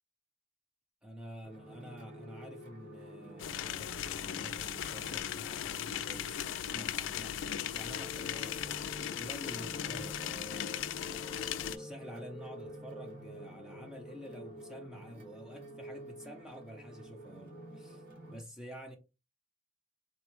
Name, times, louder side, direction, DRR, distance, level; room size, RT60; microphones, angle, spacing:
voice 1, 1.0-7.4 7.7-11.0 11.7-18.0 18.3-19.0, equal, 5° right, 0.6 m, -49 dB
sound 1, 1.4-18.4, equal, 50° right, 1.4 m, -49 dB
sound 2, 3.4-11.8, left 10 dB, 90° left, 0.3 m, -38 dB
3.7 x 2.1 x 3.0 m
head